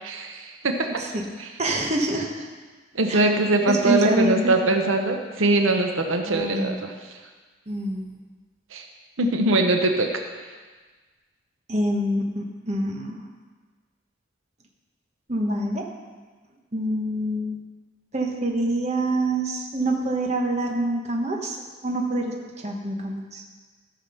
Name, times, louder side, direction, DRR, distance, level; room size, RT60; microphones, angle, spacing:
voice 1, 0.0-1.0 1.4-1.5 2.9-7.2 8.7-8.9 9.2-10.2, right 2 dB, 85° right, 4 dB, 0.9 m, -22 dB
voice 2, 1.6-2.5 3.1-3.3 3.7-4.7 6.3-6.8 7.7-8.1 11.7-13.2 15.3-15.8 16.7-17.6 18.1-21.6 21.8-23.4, right 1 dB, 35° right, 1 dB, 1.2 m, -26 dB
14.0 x 6.0 x 5.7 m, 1.4 s
head